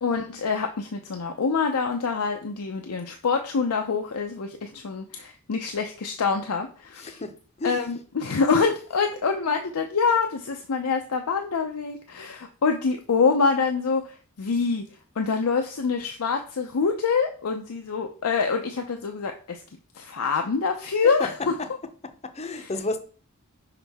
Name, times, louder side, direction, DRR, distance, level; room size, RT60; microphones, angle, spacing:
voice 1, 0.0-7.2 7.6-14.8 15.2-19.6 19.9-21.4 22.5-22.7, left 5 dB, 90° left, 0.6 m, -25 dB
voice 2, 7.0-7.9 21.2-21.7 22.0-23.0, left 3 dB, 30° left, 0.6 m, -32 dB
5.8 x 5.3 x 3.5 m
head